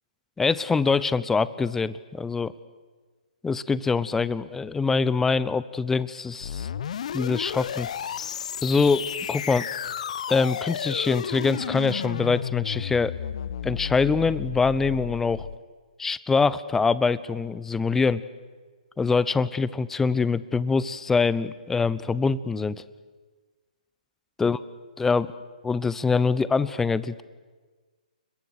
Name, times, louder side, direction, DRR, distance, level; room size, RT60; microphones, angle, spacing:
voice 1, 0.4-2.5 3.4-6.7 7.1-7.9 8.6-9.7 10.3-13.1 13.6-15.5 16.0-18.2 19.0-22.8 24.4-24.6 25.0-25.3 25.6-27.2, left 4 dB, 10° left, 17 dB, 0.7 m, -24 dB
sound 1, 6.4-15.6, left 8 dB, 55° left, 0.8 m, -33 dB
29.5 x 22.0 x 6.5 m, 1.4 s
figure-of-eight pair, 130°, 4 cm